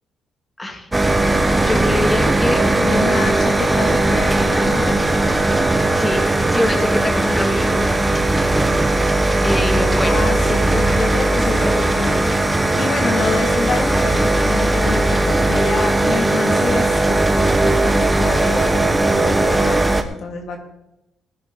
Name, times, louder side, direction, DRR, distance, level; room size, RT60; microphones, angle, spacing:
voice 1, 0.6-0.9 1.6-2.7 6.0-6.2 6.5-7.8 9.4-10.1, left 1 dB, 15° left, 2 dB, 2.4 m, -23 dB
sound 1, 0.9-20.0, right 2 dB, 15° right, 1.3 m, -18 dB
voice 2, 2.8-5.0 10.1-12.3 12.7-17.2 17.7-20.6, left 4 dB, 70° left, 2 dB, 2.4 m, -27 dB
17.0 x 10.0 x 4.0 m, 0.87 s
cardioid pair, 90°, 0 cm